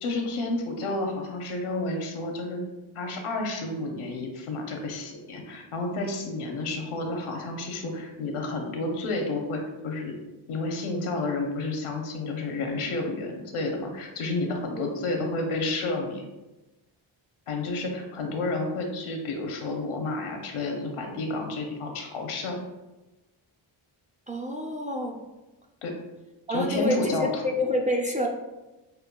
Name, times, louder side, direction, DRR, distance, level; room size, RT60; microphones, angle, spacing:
voice 1, 0.0-2.6 2.9-10.1 10.5-16.2 17.5-22.6 25.8-25.9 26.5-27.4, left 2 dB, 80° left, 3 dB, 0.8 m, -30 dB
voice 2, 24.3-25.2 26.5-28.3, left 1 dB, 15° right, 0 dB, 0.4 m, -28 dB
5.3 x 2.2 x 2.2 m, 1.1 s
cardioid pair, 65°, 49 cm